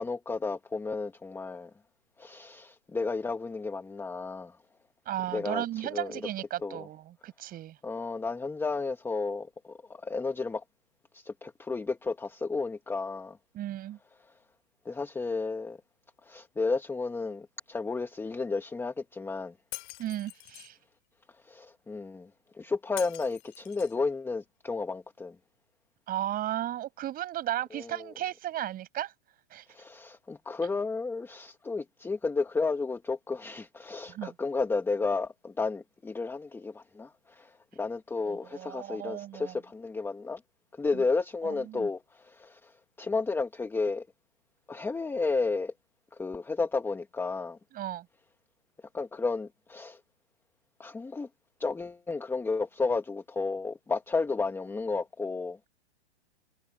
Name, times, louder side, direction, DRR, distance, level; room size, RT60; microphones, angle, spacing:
voice 1, 0.0-1.7 2.2-4.6 5.3-5.6 5.9-6.2 6.6-6.9 7.8-10.6 11.1-13.4 14.2-14.3 14.8-15.8 16.2-19.5 21.4-22.3 22.5-25.4 27.7-28.1 29.7-40.4 40.7-44.1 44.7-45.7 46.1-47.6 48.9-50.0 50.8-51.3 51.6-55.6, left 4 dB, 5° left, 1.3 m, -32 dB
voice 2, 5.1-7.8 13.5-14.0 20.0-20.8 26.1-29.1 29.5-29.7 34.1-34.3 38.3-39.5 40.9-41.0 41.4-41.9 47.7-48.1, right 12 dB, 25° right, 5.8 m, -35 dB
Shatter, 19.7-20.7 23.0-24.0, left 28 dB, 45° left, 2.7 m, -44 dB
hypercardioid pair, 135°, 34 cm